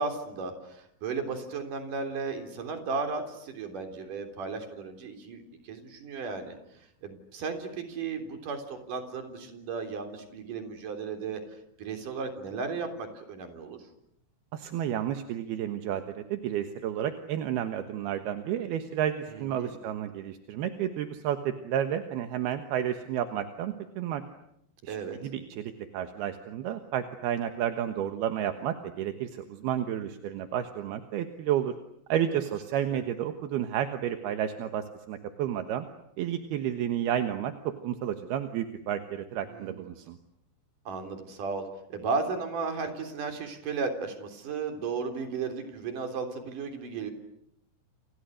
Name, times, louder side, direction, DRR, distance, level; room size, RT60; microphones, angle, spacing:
voice 1, 0.0-6.6 7.0-11.4 11.8-13.8 19.3-19.8 24.9-25.2 32.9-33.0 39.4-39.8 40.9-47.1, right 4 dB, 45° right, 6 dB, 4.8 m, -35 dB
voice 2, 14.5-24.2 24.8-31.7 32.1-35.9 36.2-40.2, right 10 dB, 65° right, 8 dB, 2.9 m, -31 dB
30.0 x 28.5 x 6.5 m, 0.75 s
omnidirectional pair, 5.6 m